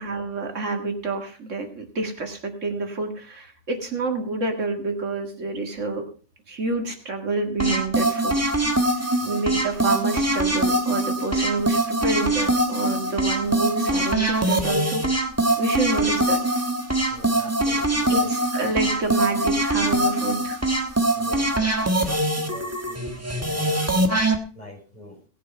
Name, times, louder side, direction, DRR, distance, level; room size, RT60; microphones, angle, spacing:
voice 1, 0.0-6.0 6.5-8.4 8.8-15.0 15.6-16.4 18.1-20.6, right 3 dB, 75° right, 3 dB, 2.3 m, -28 dB
sound 1, 7.6-24.4, right 1 dB, 10° right, 1.3 m, -23 dB
voice 2, 17.1-18.3 21.1-24.1 24.5-25.2, left 1 dB, 35° left, -2 dB, 6.2 m, -44 dB
18.5 x 6.7 x 5.3 m, 0.41 s
omnidirectional pair, 1.3 m